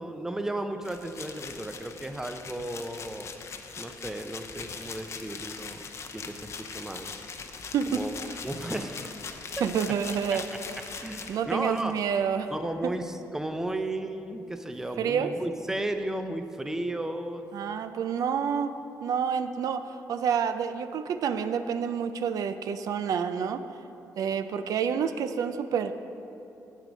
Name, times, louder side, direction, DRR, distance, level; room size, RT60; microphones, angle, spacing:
voice 1, 0.0-3.4 3.8-5.8 6.1-7.1 7.9-9.2 9.6-9.7 11.0-11.9 12.5-17.5, right 1 dB, 5° right, 7 dB, 0.5 m, -34 dB
sound 1, 0.8-12.0, left 5 dB, 50° left, 0.7 m, -41 dB
voice 2, 9.6-10.4 11.3-12.5 12.8-12.9 15.0-15.3 17.5-18.7 19.0-23.6 24.2-25.9, right 7 dB, 70° right, 10 dB, 0.4 m, -28 dB
9.3 x 7.5 x 5.1 m, 2.8 s
cardioid pair, 120°, 6 cm